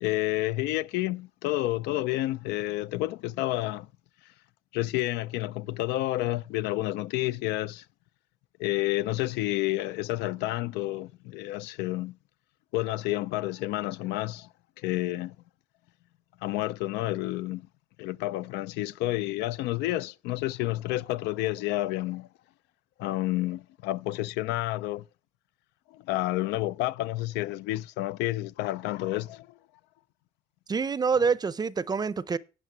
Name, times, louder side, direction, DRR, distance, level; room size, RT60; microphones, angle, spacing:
voice 1, 0.0-3.9 4.7-7.8 8.6-12.2 12.7-14.5 14.8-15.4 16.4-17.7 18.0-22.3 23.0-25.0 25.9-29.5, left 17 dB, 90° left, 0.4 m, -30 dB
voice 2, 30.7-32.4, right 5 dB, 25° right, 0.5 m, -26 dB
9.4 x 6.3 x 6.0 m
cardioid pair, 110°, 17 cm